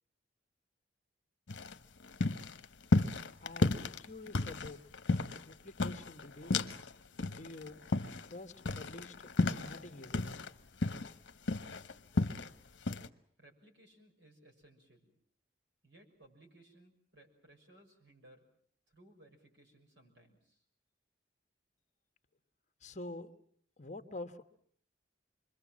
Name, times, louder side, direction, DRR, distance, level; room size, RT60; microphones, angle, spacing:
sound 1, 1.5-6.9 7.2-10.5 10.8-12.5 12.9-13.1, left 2 dB, 70° left, 1.0 m, -33 dB
voice 1, 3.4-4.8 5.4-6.7 7.3-7.8 8.3-9.3 9.6-10.4 22.8-23.4 23.8-24.4, left 2 dB, 40° left, 7 dB, 1.3 m, -47 dB
voice 2, 13.4-15.1 15.8-18.5 18.9-20.6, right 1 dB, 65° right, 3 dB, 6.3 m, -62 dB
27.5 x 22.0 x 7.4 m, 0.62 s
head